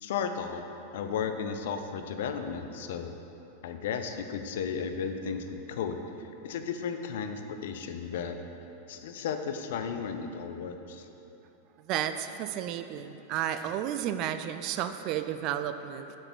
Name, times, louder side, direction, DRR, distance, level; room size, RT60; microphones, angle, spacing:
voice 1, 0.0-3.1 3.6-8.4 8.9-11.0, left 6 dB, 55° left, 7 dB, 0.5 m, -34 dB
voice 2, 11.9-16.2, right 10 dB, 40° right, 10 dB, 0.3 m, -32 dB
6.4 x 6.0 x 6.1 m, 3.0 s
figure-of-eight pair, 90°, 0 cm